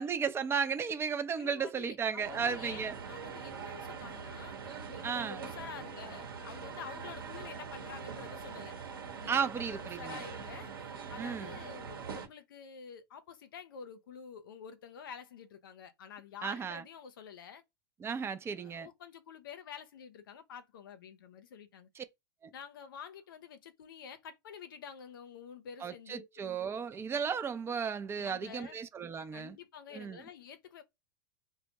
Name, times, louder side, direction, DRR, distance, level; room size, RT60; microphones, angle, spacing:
voice 1, 0.0-3.0 5.0-5.4 9.3-10.2 11.2-11.5 16.4-16.8 18.0-18.9 22.0-22.1 25.8-29.6 29.9-30.2, right 6 dB, 20° right, 0.4 m, -34 dB
voice 2, 1.4-4.6 4.9-8.7 9.2-17.6 18.5-21.9 22.5-26.5 28.2-28.8 29.3-30.8, left 7 dB, 75° left, 0.6 m, -49 dB
sound 1, 2.2-12.3, right 6 dB, 80° right, 0.9 m, -43 dB
2.1 x 2.1 x 2.7 m
hypercardioid pair, 95°, 12 cm